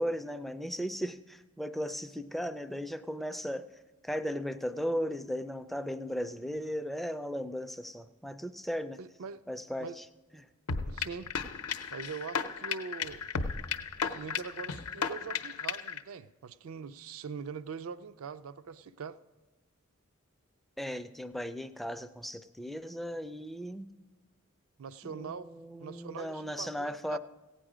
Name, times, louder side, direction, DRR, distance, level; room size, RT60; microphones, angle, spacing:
voice 1, 0.0-3.7 4.0-9.0 9.5-10.1 10.3-10.5 20.8-23.9 25.0-27.2, equal, ahead, 0.3 m, -36 dB
voice 2, 9.0-9.4 9.8-10.0 10.8-11.3 11.9-13.3 14.1-19.2 24.8-25.5 25.8-27.2, right 5 dB, 70° right, 0.4 m, -42 dB
sound 1, 10.7-16.0, left 6 dB, 85° left, 0.6 m, -34 dB
16.0 x 9.0 x 4.9 m
head